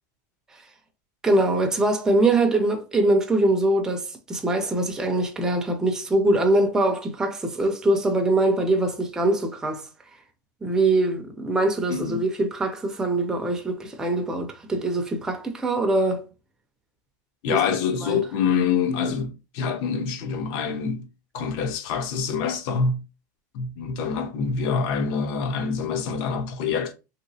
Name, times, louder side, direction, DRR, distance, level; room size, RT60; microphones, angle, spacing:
voice 1, 1.2-9.9 10.6-16.3 17.5-17.6 18.0-18.3, right 2 dB, 5° right, 0.4 m, -23 dB
voice 2, 11.9-12.2 17.4-21.1 21.3-23.0 23.5-26.9, left 6 dB, 50° left, 0.7 m, -26 dB
3.3 x 2.8 x 2.6 m
supercardioid pair, 155°, 10 cm